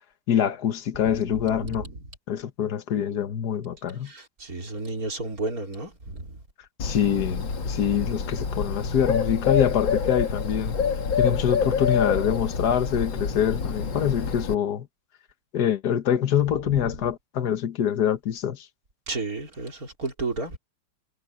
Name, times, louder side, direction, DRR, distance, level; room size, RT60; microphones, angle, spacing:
voice 1, 0.3-1.9 2.3-4.1 6.8-10.8 11.2-14.9 15.5-18.7, left 9 dB, 60° left, 1.8 m, -25 dB
voice 2, 1.0-2.0 4.0-6.4 16.6-17.0 19.1-20.6, right 3 dB, 50° right, 4.6 m, -33 dB
Bird, 6.8-14.5, left 6 dB, 80° left, 2.8 m, -27 dB
omnidirectional pair, 2.0 m